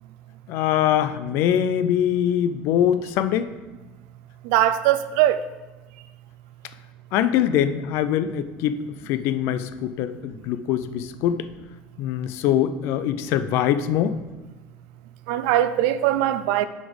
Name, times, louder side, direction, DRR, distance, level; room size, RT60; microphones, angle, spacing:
voice 1, 0.5-3.5 7.1-11.5 12.0-14.2, left 10 dB, 50° left, 0.4 m, -23 dB
voice 2, 4.5-5.4 15.3-16.7, right 12 dB, 80° right, 0.4 m, -20 dB
7.7 x 4.2 x 5.1 m
cardioid pair, 180°, 5 cm